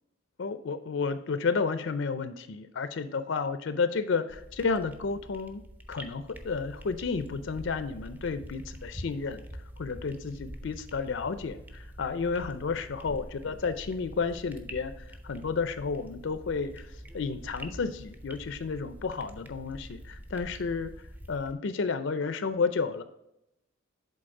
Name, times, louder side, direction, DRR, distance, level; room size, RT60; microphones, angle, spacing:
voice 1, 0.4-5.6 5.9-9.4 9.8-23.0, left 4 dB, 60° left, 11 dB, 0.4 m, -32 dB
sound 1, 4.3-21.5, equal, 10° right, 0.5 m, -46 dB
7.7 x 3.9 x 4.8 m, 0.83 s
head